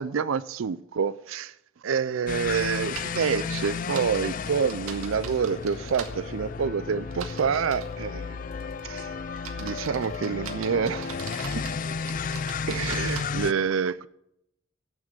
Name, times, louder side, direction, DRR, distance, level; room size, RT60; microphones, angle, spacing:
voice 1, 0.0-1.6 1.8-8.4 8.8-9.1 9.6-11.6 12.7-14.1, right 6 dB, 70° right, 0.4 m, -28 dB
sound 1, 2.3-13.5, left 5 dB, 40° left, 0.4 m, -33 dB
sound 2, 3.0-3.2 3.6-6.1 7.1-7.9 8.5-8.8 9.4-11.8 12.1-13.2, right 7 dB, 90° right, 1.7 m, -41 dB
Wind instrument woodwind instrument, 6.5-10.0, equal, 5° left, 1.6 m, -52 dB
10.5 x 7.4 x 8.9 m
head